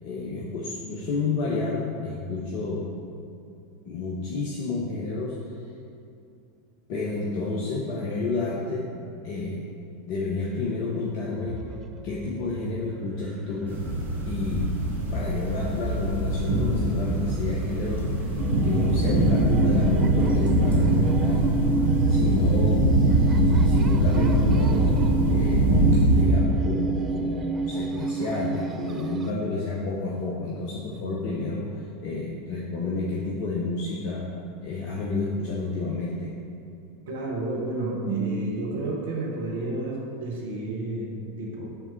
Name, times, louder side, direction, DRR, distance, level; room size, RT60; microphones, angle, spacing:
voice 1, 0.0-2.9 3.8-5.4 6.9-8.9 9.2-9.8 10.1-11.6 12.0-13.8 14.3-14.8 15.1-18.4 18.6-21.5 22.1-23.0 23.6-25.0 25.3-25.6 26.1-34.2 34.6-36.3, left 3 dB, 50° left, -4 dB, 0.8 m, -30 dB
sound 1, 11.5-14.7 16.3-16.4 16.7-17.0 17.3-17.4 17.9-29.3, right 5 dB, 30° right, 0.3 m, -31 dB
sound 2, 13.7-26.2, right 1 dB, 80° right, 1.0 m, -22 dB
voice 2, 37.0-41.7, right 2 dB, 60° right, -2 dB, 1.1 m, -30 dB
5.8 x 3.6 x 5.6 m, 2.5 s
figure-of-eight pair, 85°, 0 cm